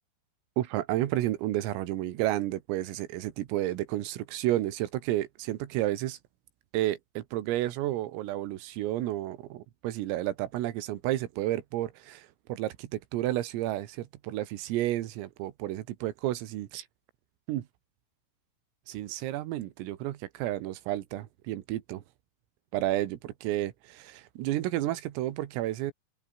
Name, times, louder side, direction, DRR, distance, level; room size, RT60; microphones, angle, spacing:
voice 1, 0.6-6.2 6.7-16.9 17.5-17.7 18.9-22.0 22.7-25.9, right 14 dB, 90° right, 4.2 m, -31 dB
omnidirectional pair, 5.9 m